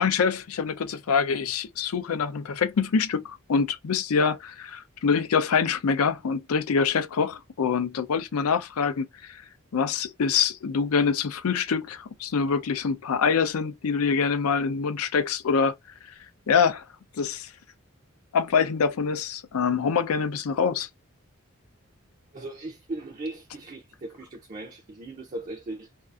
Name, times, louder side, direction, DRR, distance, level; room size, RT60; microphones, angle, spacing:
voice 1, 0.0-9.4 9.7-15.7 16.5-16.8 17.2-17.5 18.3-20.9, left 6 dB, 85° left, 0.5 m, -25 dB
voice 2, 22.3-25.9, right 2 dB, 35° right, 0.4 m, -38 dB
2.6 x 2.4 x 2.3 m
head